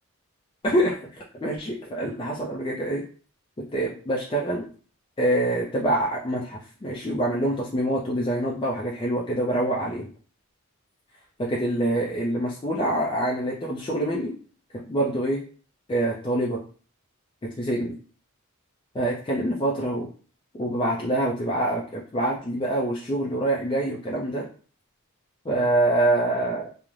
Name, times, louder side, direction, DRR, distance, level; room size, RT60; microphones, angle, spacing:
voice 1, 0.6-3.0 3.7-4.7 5.2-10.1 11.4-14.4 14.9-15.4 15.9-16.6 17.6-17.9 18.9-20.1 20.5-24.5 25.5-26.7, right 1 dB, 20° left, -4 dB, 0.4 m, -25 dB
2.4 x 2.1 x 3.0 m, 0.40 s
head